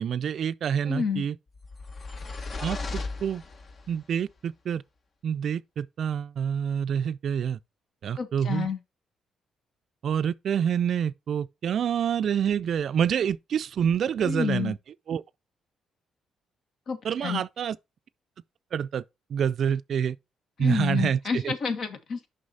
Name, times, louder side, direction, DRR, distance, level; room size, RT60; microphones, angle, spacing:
voice 1, 0.0-1.4 2.6-3.4 3.9-4.8 5.2-7.6 8.0-8.7 10.0-14.8 15.1-15.2 17.0-17.8 18.7-19.0 19.3-20.2 20.6-21.5, right 8 dB, 60° right, 0.4 m, -27 dB
voice 2, 0.9-1.2 8.2-8.8 14.2-14.7 16.9-17.4 20.6-22.3, left 6 dB, 60° left, 1.6 m, -29 dB
sound 1, 1.5-4.0, left 3 dB, 45° left, 1.0 m, -36 dB
6.3 x 5.7 x 4.0 m
cardioid pair, 90°, 0 cm